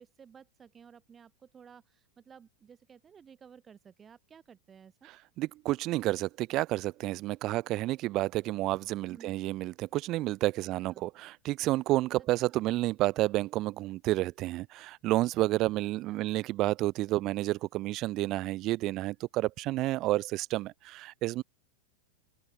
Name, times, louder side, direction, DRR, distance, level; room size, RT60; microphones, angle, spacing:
voice 1, 0.0-5.1 9.1-9.4 10.6-11.1 12.4-12.6 16.1-16.2, right 7 dB, 20° right, 2.2 m, -55 dB
voice 2, 5.0-21.4, right 17 dB, 35° right, 0.5 m, -30 dB
open air
figure-of-eight pair, 90°, 0 cm